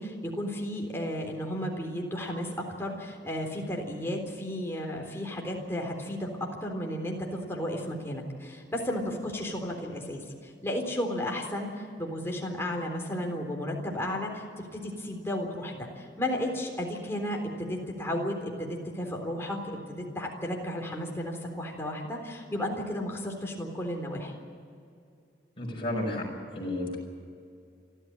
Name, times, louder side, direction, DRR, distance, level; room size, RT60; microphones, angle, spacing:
voice 1, 0.0-10.2 10.6-24.3, left 1 dB, 15° left, 0 dB, 3.7 m, -33 dB
voice 2, 25.6-26.3 26.5-27.0, left 1 dB, 30° left, -1 dB, 5.9 m, -31 dB
29.0 x 13.0 x 8.9 m, 2.4 s
head